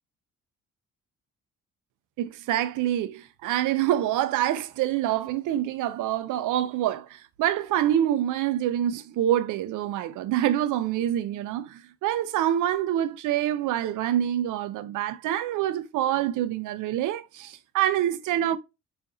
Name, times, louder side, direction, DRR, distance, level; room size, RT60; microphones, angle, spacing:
voice 1, 2.2-18.6, right 12 dB, 85° right, 0.6 m, -26 dB
4.8 x 2.7 x 2.3 m
cardioid pair, 90°, 30 cm